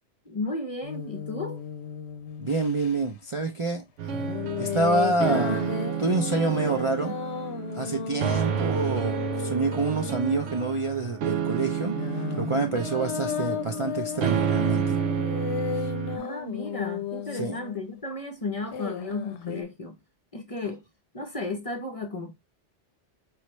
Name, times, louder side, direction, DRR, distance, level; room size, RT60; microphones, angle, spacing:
voice 1, 0.3-1.6 16.2-20.0 20.3-20.8 21.1-22.3, left 3 dB, 35° left, 0.6 m, -34 dB
sound 1, 0.8-2.9 4.1-10.8 11.6-18.0 18.7-19.6, left 7 dB, 70° left, 0.8 m, -34 dB
voice 2, 2.4-3.8 4.6-5.7 6.0-7.1 7.7-11.9 12.3-15.0 17.3-17.6, right 3 dB, 40° right, 0.5 m, -27 dB
sound 2, 4.0-16.2, right 8 dB, 85° right, 1.0 m, -30 dB
4.9 x 3.2 x 3.1 m
omnidirectional pair, 1.2 m